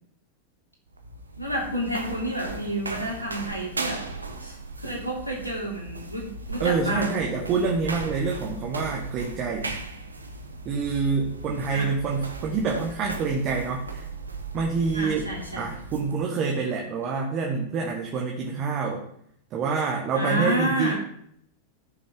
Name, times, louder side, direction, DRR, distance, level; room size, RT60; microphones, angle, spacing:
sound 1, 0.9-16.2, right 3 dB, 80° right, 1.1 m, -37 dB
voice 1, 1.4-4.0 4.4-7.1 11.7-11.9 14.9-15.7 20.1-20.9, right 1 dB, 90° left, -3 dB, 3.1 m, -30 dB
voice 2, 6.6-9.8 10.6-14.0 14.5-15.3 15.6-19.0 19.5-20.9, right 4 dB, 35° right, 0 dB, 1.6 m, -27 dB
14.0 x 6.2 x 3.8 m, 0.69 s
figure-of-eight pair, 90°, 0 cm